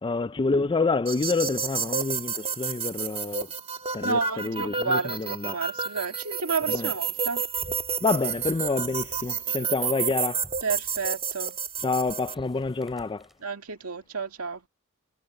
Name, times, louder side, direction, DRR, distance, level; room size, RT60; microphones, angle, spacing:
voice 1, 0.0-3.5 3.9-5.6 6.7-6.9 8.0-10.5 11.8-13.3, left 3 dB, 20° left, 0.4 m, -28 dB
sound 1, 1.1-12.3, right 6 dB, 25° right, 1.6 m, -30 dB
voice 2, 4.0-7.4 10.6-11.6 13.4-14.7, right 4 dB, 80° right, 2.1 m, -31 dB
sound 2, 7.0-13.4, equal, ahead, 7.3 m, -53 dB
head